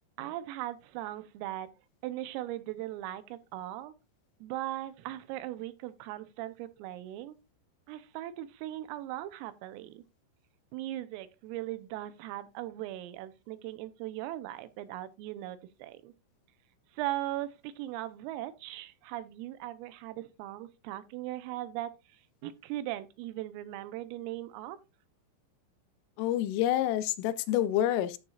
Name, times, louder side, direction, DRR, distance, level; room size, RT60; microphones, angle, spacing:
voice 1, 0.2-1.7 2.0-3.9 4.4-7.4 7.9-10.0 10.7-16.1 16.9-24.8, right 14 dB, 85° right, 3.5 m, -39 dB
voice 2, 26.2-28.2, left 12 dB, 85° left, 3.2 m, -28 dB
13.5 x 6.8 x 2.4 m
omnidirectional pair, 5.9 m